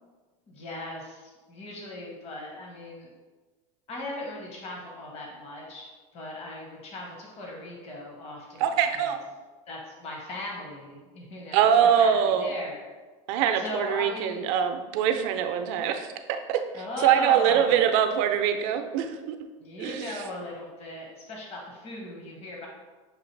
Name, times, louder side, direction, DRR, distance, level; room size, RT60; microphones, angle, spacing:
voice 1, 0.5-3.1 3.9-5.9 6.1-8.7 9.0-9.1 9.7-12.9 13.6-14.4 16.7-17.8 19.6-22.7, left 1 dB, 35° left, -1 dB, 1.0 m, -38 dB
voice 2, 8.6-9.2 11.5-12.5 13.3-19.4 19.8-20.2, right 9 dB, 65° right, 6 dB, 0.5 m, -24 dB
6.4 x 2.4 x 3.2 m, 1.3 s
supercardioid pair, 125°, 17 cm